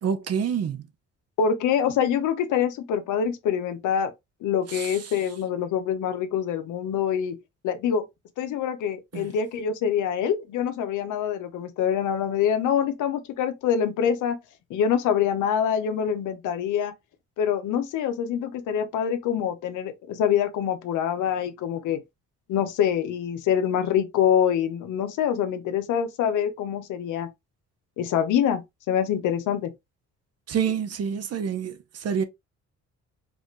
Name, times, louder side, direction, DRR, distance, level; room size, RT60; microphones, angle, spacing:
voice 1, 0.0-0.9 4.7-4.9 9.1-9.3 30.5-32.2, right 7 dB, 55° right, 0.9 m, -27 dB
voice 2, 1.4-4.1 4.4-7.4 7.6-8.0 8.4-14.4 14.7-16.9 17.4-22.0 22.5-27.3 28.0-29.7, left 8 dB, 85° left, 0.8 m, -25 dB
4.9 x 2.4 x 3.1 m
cardioid pair, 90°, 30 cm